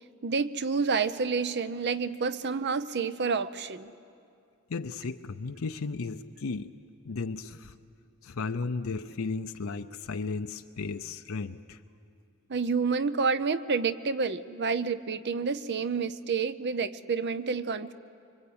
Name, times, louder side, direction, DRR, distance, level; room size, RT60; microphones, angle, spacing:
voice 1, 0.2-3.9 12.5-17.9, right 5 dB, 50° right, 0.7 m, -29 dB
voice 2, 4.7-6.7 7.0-7.7 8.2-11.8, left 4 dB, 70° left, 0.6 m, -34 dB
25.0 x 24.0 x 8.7 m
head